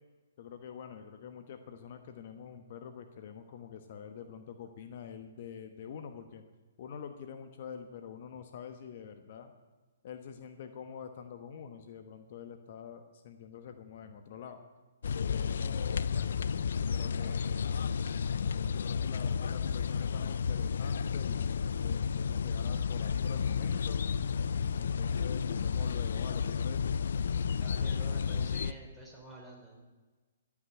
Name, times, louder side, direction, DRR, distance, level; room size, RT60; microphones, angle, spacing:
voice 1, 0.4-6.4 6.8-9.5 10.0-14.6 15.3-16.4 16.8-17.7 18.4-24.0 24.8-27.0, left 7 dB, 50° left, 7 dB, 1.1 m, -46 dB
sound 1, 15.0-28.7, left 6 dB, 70° left, 0.4 m, -32 dB
voice 2, 27.6-29.8, right 1 dB, 5° right, -3 dB, 3.8 m, -48 dB
16.0 x 6.0 x 9.1 m, 1.3 s
hypercardioid pair, 135°, 0 cm